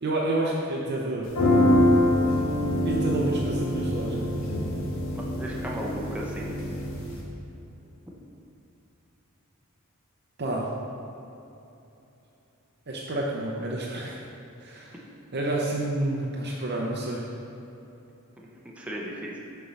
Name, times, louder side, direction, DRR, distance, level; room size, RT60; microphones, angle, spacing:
voice 1, 0.0-1.3 2.8-4.3 10.4-10.7 12.9-14.2 14.6-14.9 15.3-17.3, right 1 dB, 50° right, -3 dB, 0.7 m, -29 dB
sound 1, 1.3-7.2, left 1 dB, 65° left, 1.3 m, -24 dB
voice 2, 5.2-6.5 18.8-19.4, equal, 5° right, -4 dB, 0.7 m, -35 dB
7.0 x 4.6 x 5.4 m, 2.9 s
head